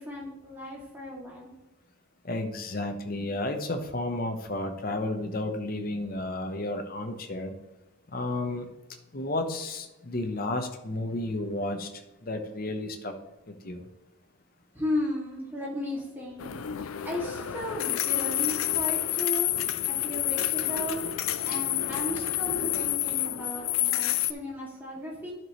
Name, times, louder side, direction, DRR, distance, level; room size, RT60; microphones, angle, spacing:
voice 1, 0.0-1.5 14.7-16.5 17.0-19.5 19.9-21.0 21.5-25.3, left 1 dB, 10° right, -5 dB, 2.2 m, -35 dB
voice 2, 2.2-7.5 8.1-8.7 9.1-11.9 12.2-13.1 13.5-13.8 21.5-21.6 22.5-22.8, left 2 dB, 40° left, 6 dB, 0.9 m, -32 dB
sound 1, 16.4-24.3, left 13 dB, 75° left, 0.4 m, -29 dB
11.0 x 6.1 x 3.1 m, 1.0 s
head